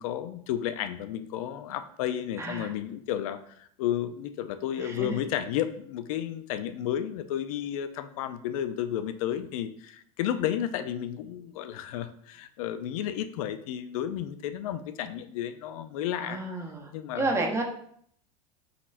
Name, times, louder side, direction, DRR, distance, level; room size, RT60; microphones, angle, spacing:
voice 1, 0.0-16.4 16.9-17.5, left 10 dB, 80° left, 11 dB, 0.4 m, -32 dB
voice 2, 2.4-2.7 4.8-5.2 16.2-16.9 17.2-17.6, right 3 dB, 15° right, 2 dB, 0.6 m, -31 dB
4.2 x 4.0 x 2.5 m, 0.65 s
supercardioid pair, 130°, 18 cm